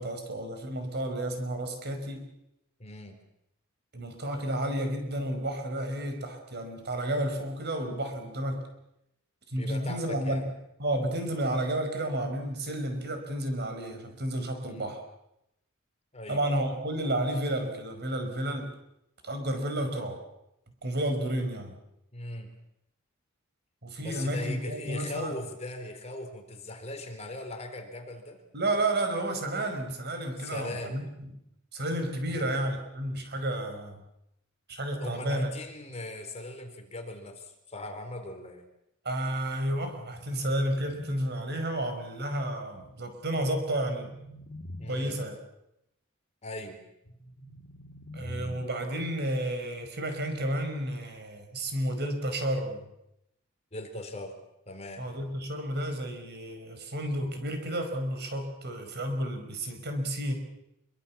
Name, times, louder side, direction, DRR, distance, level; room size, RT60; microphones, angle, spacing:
voice 1, 0.0-2.3 3.9-8.6 9.5-10.4 10.8-15.0 16.3-18.7 19.2-20.2 20.8-21.7 23.8-25.3 28.5-31.3 31.7-34.0 34.7-35.5 39.0-44.1 44.9-45.4 48.1-52.8 55.0-60.4, right 1 dB, 50° right, 6 dB, 5.1 m, -31 dB
voice 2, 2.8-3.2 9.5-10.5 14.6-14.9 16.1-16.4 22.1-22.5 24.0-28.4 30.4-31.0 32.3-32.5 35.0-38.6 44.8-45.2 46.4-46.8 53.7-54.3 54.7-55.0, left 1 dB, 30° left, 5 dB, 3.9 m, -39 dB
sound 1, 39.7-41.7 43.4-45.2 47.0-49.0, equal, 75° left, 3.6 m, -45 dB
26.0 x 24.0 x 7.3 m, 0.83 s
head